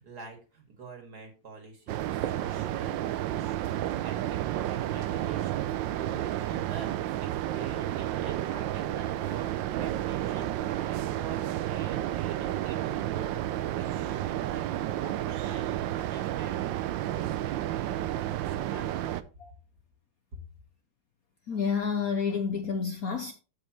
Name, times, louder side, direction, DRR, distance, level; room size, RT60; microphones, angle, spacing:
voice 1, 0.0-10.5 10.8-19.2, right 5 dB, 50° right, 2.6 m, -47 dB
sound 1, 1.9-19.2, right 13 dB, 75° right, 1.2 m, -31 dB
voice 2, 21.5-23.3, left 6 dB, 60° left, 1.0 m, -29 dB
14.0 x 5.3 x 3.1 m
omnidirectional pair, 2.2 m